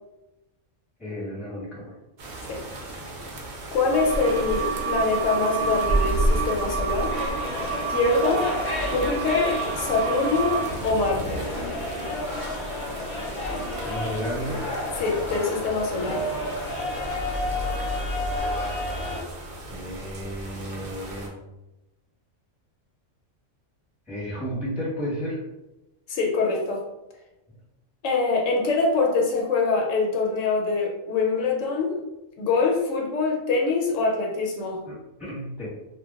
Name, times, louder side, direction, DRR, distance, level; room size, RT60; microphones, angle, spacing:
voice 1, 1.0-1.9 13.8-14.7 19.7-21.3 24.1-25.4 34.9-35.7, equal, ahead, -7 dB, 0.8 m, -32 dB
sound 1, 2.2-21.3, right 1 dB, 60° right, 0.6 m, -34 dB
voice 2, 3.7-7.2 7.9-8.5 8.8-11.5 15.0-16.3 26.1-26.8 28.0-32.0 32.4-34.8, left 3 dB, 75° left, 0 dB, 0.9 m, -24 dB
sound 2, 3.9-10.7, right 6 dB, 85° right, 1.0 m, -30 dB
sound 3, 7.1-19.2, left 1 dB, 45° left, 0.6 m, -31 dB
2.2 x 2.1 x 3.5 m, 0.98 s
omnidirectional pair, 1.3 m